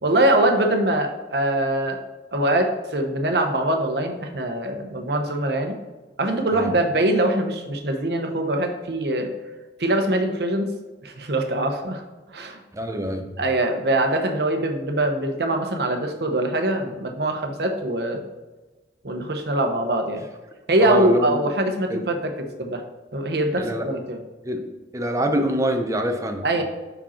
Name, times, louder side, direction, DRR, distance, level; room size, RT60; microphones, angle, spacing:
voice 1, 0.0-2.0 2.3-5.8 6.2-9.3 9.8-10.7 11.0-12.0 12.3-12.6 13.4-18.2 19.0-20.2 20.7-22.8 23.1-24.2 26.4-26.6, right 1 dB, 65° right, 4 dB, 0.9 m, -23 dB
voice 2, 12.7-13.3 20.8-21.4 21.9-22.0 23.6-23.9 24.4-24.7 24.9-26.6, right 1 dB, 20° right, 5 dB, 0.7 m, -25 dB
5.4 x 5.0 x 4.3 m, 1.2 s
head